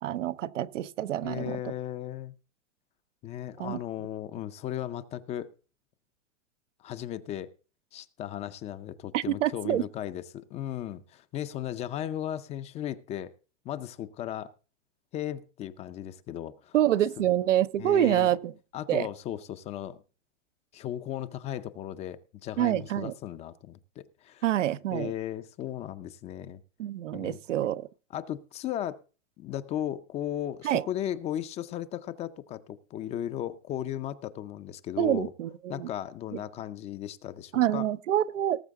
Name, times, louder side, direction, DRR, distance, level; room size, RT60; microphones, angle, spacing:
voice 1, 0.0-1.6 3.6-3.8 9.1-9.8 16.7-18.5 18.9-19.1 22.6-23.1 24.4-25.1 26.8-27.9 30.6-30.8 35.0-35.9 37.5-38.6, right 12 dB, 90° right, 0.9 m, -26 dB
voice 2, 1.2-2.3 3.2-5.5 6.8-7.5 7.9-13.3 13.6-14.5 15.1-16.7 17.2-17.3 17.8-18.3 18.7-20.0 20.7-24.4 24.9-26.6 27.1-27.4 28.1-29.0 29.4-35.3 35.7-37.9, left 11 dB, 20° left, 0.5 m, -36 dB
19.0 x 7.1 x 3.5 m
hypercardioid pair, 145°, 36 cm